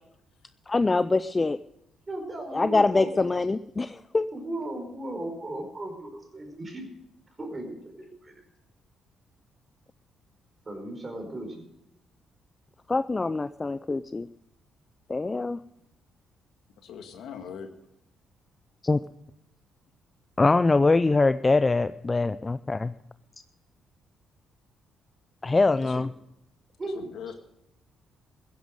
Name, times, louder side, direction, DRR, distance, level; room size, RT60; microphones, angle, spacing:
voice 1, 0.7-1.6 2.5-4.3 12.9-14.3 15.1-15.6 18.8-19.0 20.4-22.9 25.4-26.1, left 3 dB, 25° left, 13 dB, 0.5 m, -23 dB
voice 2, 2.1-3.3 4.3-6.8 7.4-8.3 10.6-11.6 26.8-27.1, right 1 dB, 30° right, 4 dB, 4.9 m, -36 dB
voice 3, 16.8-17.7 25.8-26.0 26.8-27.3, left 7 dB, 80° left, 6 dB, 1.9 m, -41 dB
15.0 x 10.5 x 6.5 m, 0.84 s
cardioid pair, 90°, 0 cm